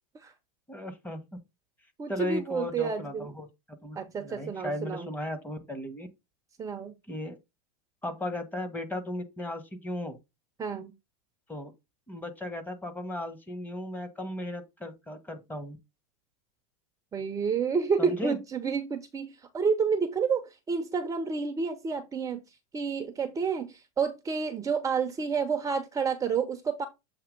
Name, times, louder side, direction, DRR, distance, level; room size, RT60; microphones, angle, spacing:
voice 1, 0.7-1.2 2.1-6.1 7.1-7.4 8.0-10.2 11.5-11.7 12.1-15.8 18.0-18.4, left 1 dB, 10° left, 1.4 m, -36 dB
voice 2, 2.0-3.3 4.0-5.1 6.6-6.9 10.6-10.9 17.1-22.4 22.7-26.9, right 5 dB, 15° right, 0.8 m, -29 dB
7.8 x 2.8 x 5.2 m
hypercardioid pair, 120°, 19 cm